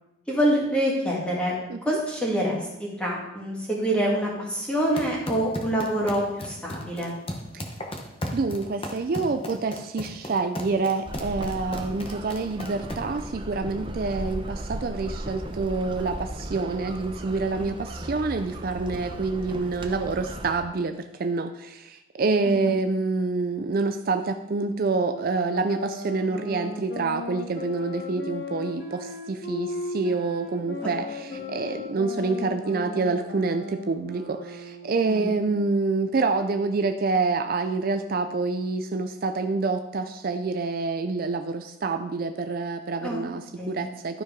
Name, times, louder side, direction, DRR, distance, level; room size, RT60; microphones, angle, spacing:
voice 1, 0.3-1.5 1.8-7.1 17.6-17.7 22.5-22.8 30.8-30.9 35.0-35.3 43.0-43.2 43.6-43.8, right 1 dB, 5° left, -4 dB, 2.0 m, -26 dB
sound 1, 4.8-13.2, left 1 dB, 25° left, 1.0 m, -36 dB
voice 2, 8.3-44.2, right 3 dB, 45° right, 8 dB, 0.4 m, -27 dB
sound 2, 11.1-20.6, right 1 dB, 25° right, 0.7 m, -36 dB
sound 3, 25.1-35.1, left 2 dB, 60° left, 1.7 m, -37 dB
12.5 x 4.6 x 5.1 m, 0.92 s
head